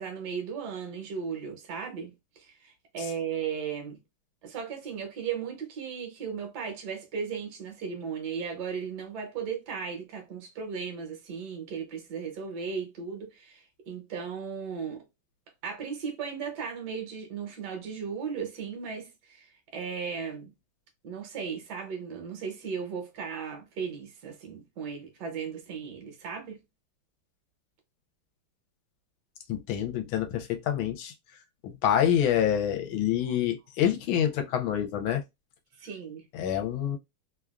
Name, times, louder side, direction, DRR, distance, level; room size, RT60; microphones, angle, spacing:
voice 1, 0.0-2.1 2.4-4.0 4.4-15.0 15.6-20.5 21.0-26.6 33.2-33.4 35.8-36.3, right 6 dB, 60° right, 1.3 m, -36 dB
voice 2, 29.5-31.1 31.6-35.2 36.3-37.0, left 10 dB, 80° left, 1.4 m, -27 dB
3.4 x 2.3 x 2.3 m
omnidirectional pair, 2.3 m